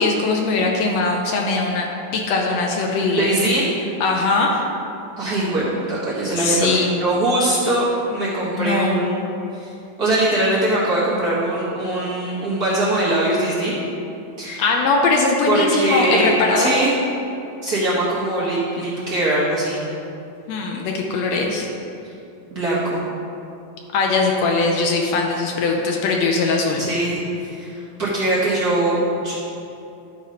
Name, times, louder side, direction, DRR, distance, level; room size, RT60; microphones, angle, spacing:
voice 1, 0.0-1.9 2.1-3.3 4.0-4.6 6.4-6.9 8.6-9.1 14.6-16.7 20.5-21.7 23.9-26.8, left 3 dB, 85° left, 0 dB, 1.4 m, -20 dB
voice 2, 3.1-3.7 5.2-9.1 9.5-9.7 10.0-13.7 14.4-14.6 15.5-16.9 17.6-19.9 22.0-22.1 22.5-23.0 26.8-29.0 29.2-29.3, right 1 dB, 60° right, -9 dB, 1.0 m, -21 dB
11.5 x 4.2 x 5.1 m, 2.8 s
omnidirectional pair, 3.8 m